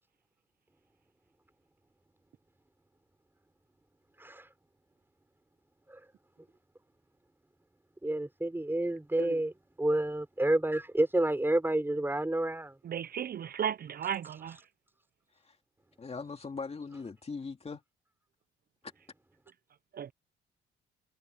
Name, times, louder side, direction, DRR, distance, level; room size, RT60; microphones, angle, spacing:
voice 1, 8.0-9.5 9.8-12.7, right 1 dB, 10° right, 5.5 m, -29 dB
voice 2, 12.8-14.6 19.9-20.1, right 9 dB, 50° right, 0.6 m, -35 dB
voice 3, 16.0-17.8, left 4 dB, 30° left, 2.8 m, -40 dB
cardioid pair, 90°, 20 cm